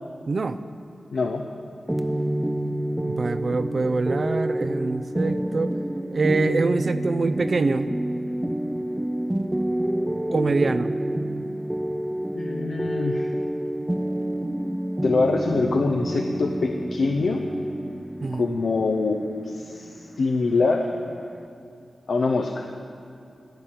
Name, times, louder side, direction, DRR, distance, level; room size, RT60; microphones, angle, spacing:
voice 1, 0.3-0.6 3.2-5.7 6.1-7.9 10.3-10.9 18.2-18.5, right 3 dB, 55° right, 12 dB, 0.5 m, -24 dB
voice 2, 1.1-1.4 12.3-13.3 15.0-17.4 18.4-20.9 22.1-22.7, left 3 dB, 75° left, 2 dB, 0.7 m, -24 dB
sound 1, 1.9-21.5, right 1 dB, 10° right, 0.5 m, -28 dB
10.5 x 10.5 x 7.5 m, 2.6 s
cardioid pair, 70°, 0 cm